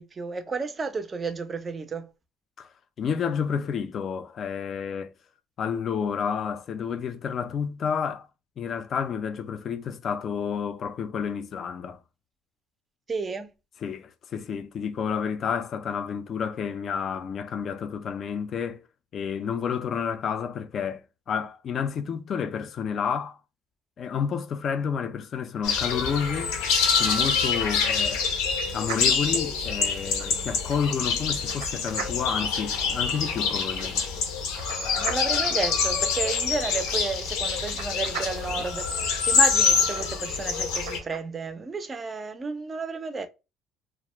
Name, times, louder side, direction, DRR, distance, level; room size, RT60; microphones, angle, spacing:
voice 1, 0.0-2.1 13.1-13.5 35.0-43.3, right 4 dB, 25° right, 0.4 m, -32 dB
voice 2, 3.0-5.1 5.6-8.3 8.6-12.0 13.8-18.9 19.1-21.0 21.3-23.4 24.0-26.6 26.9-28.2 28.7-34.0, left 7 dB, 40° left, 0.3 m, -30 dB
sound 1, 25.6-41.0, left 5 dB, 85° left, 0.6 m, -26 dB
sound 2, 28.8-41.2, right 6 dB, 85° right, 0.6 m, -42 dB
2.4 x 2.0 x 2.9 m
cardioid pair, 125°, 0 cm